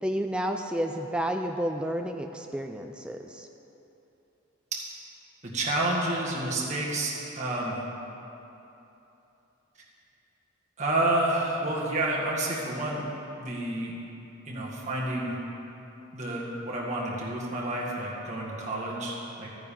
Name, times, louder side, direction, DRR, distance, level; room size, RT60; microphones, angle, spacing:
voice 1, 0.0-3.5, equal, 5° right, 4 dB, 0.3 m, -31 dB
voice 2, 5.4-7.8 10.8-13.1 13.4-13.9 14.5-15.3 16.1-19.5, right 1 dB, 35° right, -4 dB, 1.7 m, -29 dB
13.5 x 9.3 x 3.8 m, 3.0 s
head